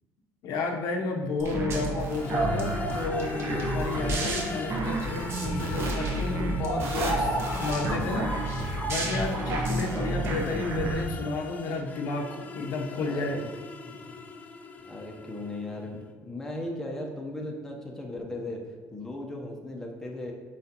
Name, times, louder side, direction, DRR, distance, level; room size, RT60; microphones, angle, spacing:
voice 1, 0.4-7.3 7.6-8.5 8.9-13.4, left 3 dB, 70° left, 3 dB, 0.9 m, -32 dB
sound 1, 1.4-11.0, right 1 dB, 45° right, 1.2 m, -30 dB
sound 2, 2.1-15.9, left 4 dB, 25° left, 0.5 m, -40 dB
voice 2, 9.9-10.3 12.6-13.5 13.8-14.1 14.8-20.3, left 1 dB, 10° left, 0 dB, 0.9 m, -38 dB
7.7 x 4.9 x 2.9 m, 1.3 s
cardioid pair, 145°, 6 cm